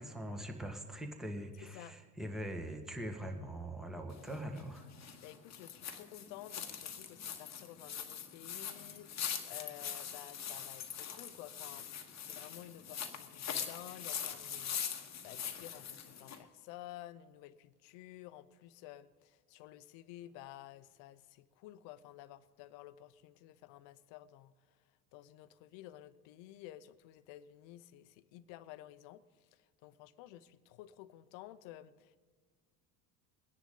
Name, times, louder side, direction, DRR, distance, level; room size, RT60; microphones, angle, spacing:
voice 1, 0.0-4.9, right 1 dB, ahead, 3 dB, 1.7 m, -42 dB
voice 2, 1.6-2.0 5.2-24.5 25.1-29.2 29.5-32.2, left 14 dB, 60° left, 14 dB, 0.9 m, -53 dB
sound 1, 4.1-16.4, left 8 dB, 30° left, 1.4 m, -43 dB
22.0 x 10.0 x 3.9 m, 1.5 s
hypercardioid pair, 75°, 50 cm